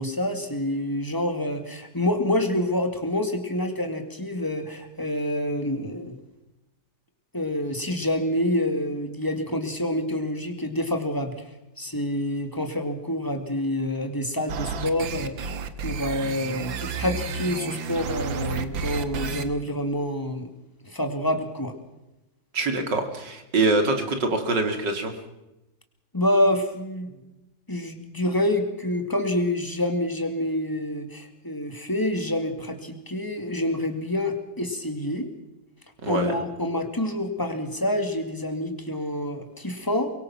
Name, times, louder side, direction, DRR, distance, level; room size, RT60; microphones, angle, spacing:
voice 1, 0.0-6.2 7.3-11.4 11.8-20.5 20.9-21.7 26.1-27.2 27.7-35.3 36.0-40.1, left 1 dB, 10° left, 5 dB, 2.4 m, -27 dB
sound 1, 14.5-19.4, right 5 dB, 90° right, 2.1 m, -31 dB
voice 2, 22.5-25.1 36.0-36.3, right 3 dB, 65° right, 6 dB, 3.3 m, -24 dB
24.0 x 23.0 x 6.0 m, 0.94 s
omnidirectional pair, 2.0 m